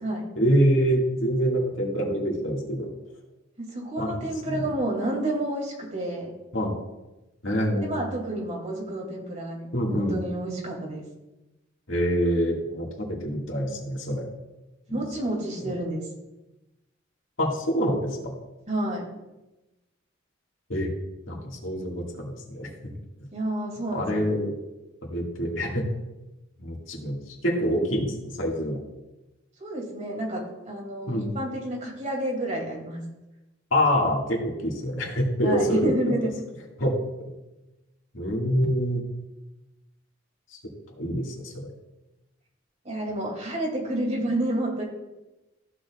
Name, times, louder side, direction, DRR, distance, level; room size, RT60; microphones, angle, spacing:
voice 1, 0.4-2.9 4.0-4.7 6.5-6.8 7.4-8.0 9.7-10.2 11.9-14.3 14.9-15.0 15.6-15.7 17.4-18.3 20.7-20.9 21.3-22.9 23.9-24.5 25.1-25.8 26.6-28.8 31.1-31.4 33.7-36.1 36.8-36.9 37.2-37.3 38.1-39.0 41.0-41.7, equal, 75° left, -1 dB, 2.0 m, -26 dB
voice 2, 3.6-6.3 7.8-11.0 14.9-16.0 18.7-19.0 23.3-24.3 29.6-33.0 35.4-36.3 42.8-44.8, right 1 dB, 40° right, -2 dB, 2.4 m, -30 dB
14.5 x 6.4 x 2.4 m, 1.0 s
head